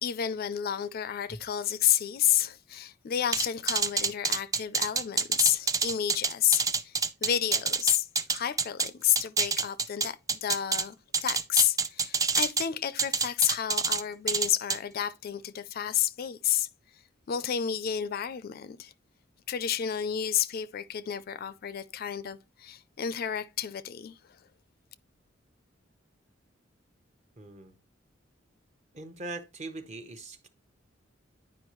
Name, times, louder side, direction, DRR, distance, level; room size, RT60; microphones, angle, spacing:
voice 1, 0.0-7.0 7.2-11.0 11.2-16.7 17.3-18.9 19.5-24.1, left 10 dB, 50° left, 0.4 m, -30 dB
sound 1, 3.3-8.9 9.2-10.8 11.1-12.7 13.0-14.0 14.3-14.8, right 4 dB, 20° right, 0.4 m, -27 dB
voice 2, 27.4-27.7 28.9-30.5, right 2 dB, 35° right, 0.9 m, -41 dB
9.6 x 4.8 x 3.0 m
head